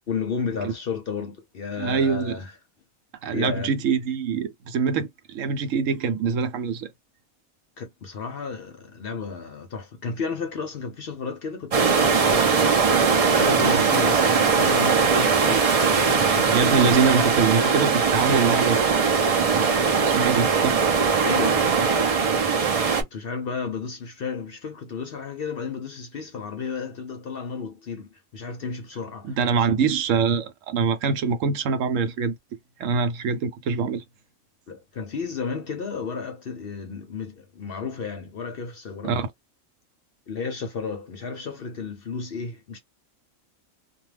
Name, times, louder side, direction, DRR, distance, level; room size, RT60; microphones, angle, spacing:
voice 1, 0.1-2.5 3.3-3.7 7.8-13.0 13.3-16.9 21.2-21.6 23.0-29.8 34.7-39.2 40.3-42.8, left 5 dB, 55° left, 0.7 m, -33 dB
voice 2, 1.8-2.4 3.2-6.9 13.6-13.8 16.5-18.8 19.5-19.7 20.0-20.8 29.2-32.3 32.8-34.0 39.0-39.3, right 5 dB, 70° right, 0.9 m, -24 dB
sound 1, 11.7-23.0, right 5 dB, 50° right, 0.4 m, -20 dB
2.4 x 2.2 x 3.2 m
omnidirectional pair, 1.4 m